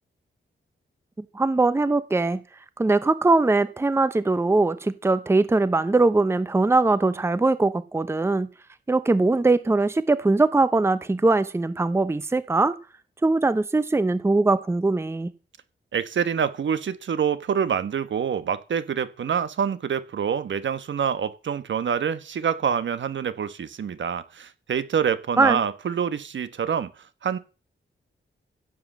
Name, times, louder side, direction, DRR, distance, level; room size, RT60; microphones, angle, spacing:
voice 1, 1.3-2.4 2.8-8.5 8.9-12.7 13.2-15.3 25.4-25.6, right 3 dB, 15° right, 0.7 m, -21 dB
voice 2, 15.9-26.9 27.2-27.4, right 7 dB, 70° right, 1.4 m, -26 dB
16.0 x 7.9 x 7.5 m
wide cardioid pair, 160°, 20 cm